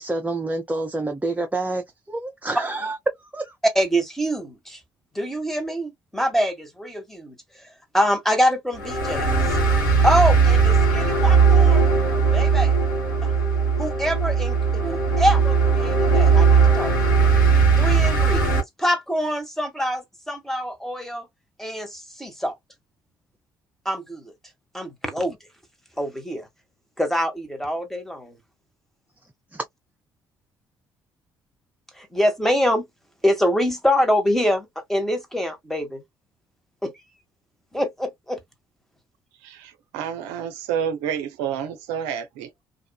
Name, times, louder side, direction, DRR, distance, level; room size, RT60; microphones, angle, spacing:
voice 1, 0.0-3.5 29.5-29.6, right 2 dB, 15° right, 0.7 m, -28 dB
voice 2, 3.7-4.8 5.1-9.4 10.0-11.9 12.3-12.8 13.2-13.3 13.8-17.3 17.8-21.3 21.6-22.5 23.8-24.3 24.7-25.4 26.0-26.5 27.0-28.4 32.0-32.9 33.2-36.0 36.8-36.9 37.7-38.4, equal, 5° left, 1.3 m, -25 dB
sound 1, 8.8-18.6, right 5 dB, 90° left, 1.0 m, -18 dB
voice 3, 39.4-42.5, right 8 dB, 75° right, 0.5 m, -29 dB
2.5 x 2.5 x 2.2 m
hypercardioid pair, 50°, 10 cm